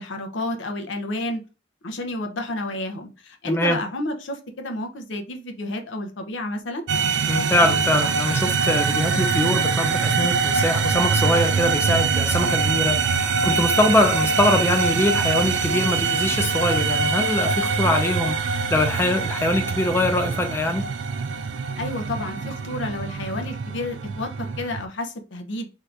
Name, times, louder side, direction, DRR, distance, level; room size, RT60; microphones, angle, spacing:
voice 1, 0.0-1.4 1.8-6.8 21.8-25.7, left 1 dB, 80° left, 0.7 m, -30 dB
voice 2, 3.5-3.8 7.3-20.9, left 1 dB, 10° left, 0.4 m, -23 dB
sound 1, 6.9-24.8, right 5 dB, 75° right, 0.3 m, -23 dB
2.8 x 2.5 x 3.3 m
head